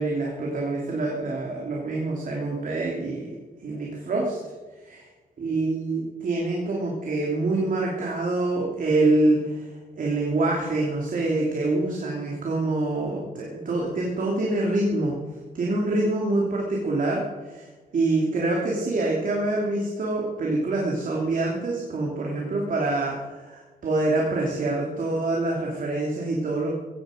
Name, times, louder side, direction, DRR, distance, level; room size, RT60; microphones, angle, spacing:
voice 1, 0.0-3.3 3.6-4.4 4.8-5.1 5.4-9.7 10.0-15.2 15.5-17.2 17.5-17.7 17.9-26.7, right 2 dB, 55° right, -2 dB, 3.1 m, -25 dB
17.5 x 15.5 x 5.2 m, 1.3 s
wide cardioid pair, 125°, 16 cm